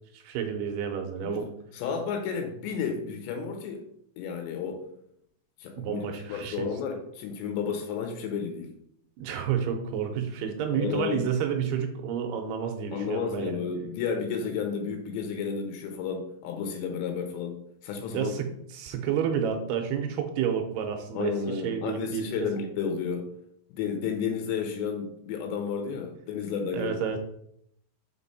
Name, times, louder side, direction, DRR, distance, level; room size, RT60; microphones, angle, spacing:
voice 1, 0.1-1.5 5.8-6.7 9.2-13.6 18.1-22.5 26.7-27.2, right 8 dB, 80° right, 5 dB, 2.6 m, -30 dB
voice 2, 1.2-3.8 4.2-4.8 5.6-6.0 6.3-8.7 10.7-11.3 12.9-18.4 21.1-23.3 23.7-26.9, left 6 dB, 85° left, 4 dB, 3.2 m, -32 dB
6.0 x 4.9 x 4.1 m, 0.72 s
omnidirectional pair, 4.9 m